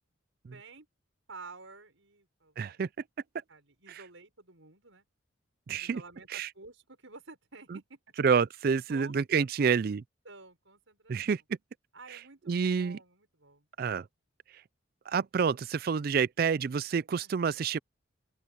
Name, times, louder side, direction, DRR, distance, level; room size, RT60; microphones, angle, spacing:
voice 1, 0.5-0.9 1.3-2.8 3.5-5.1 5.7-8.0 8.9-9.8 10.2-11.4 11.9-13.7 17.2-17.5, right 3 dB, 75° right, 5.6 m, -51 dB
voice 2, 2.6-2.9 5.7-6.0 6.3-6.5 7.7-7.8 8.2-10.0 11.1-11.4 12.5-13.0 13.8-14.0 15.1-17.8, right 6 dB, 45° right, 0.3 m, -28 dB
open air
head